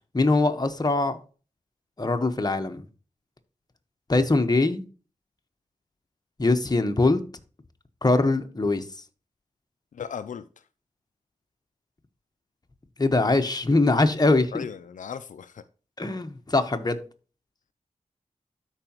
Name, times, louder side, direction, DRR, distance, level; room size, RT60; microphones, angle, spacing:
voice 1, 0.1-1.2 2.0-2.8 4.1-4.8 6.4-7.2 8.0-8.8 13.0-14.6 16.0-17.0, left 2 dB, 30° left, 1.2 m, -22 dB
voice 2, 9.9-10.4 14.5-15.6, left 7 dB, 85° left, 0.5 m, -36 dB
12.5 x 4.9 x 3.0 m
cardioid pair, 55°, 13 cm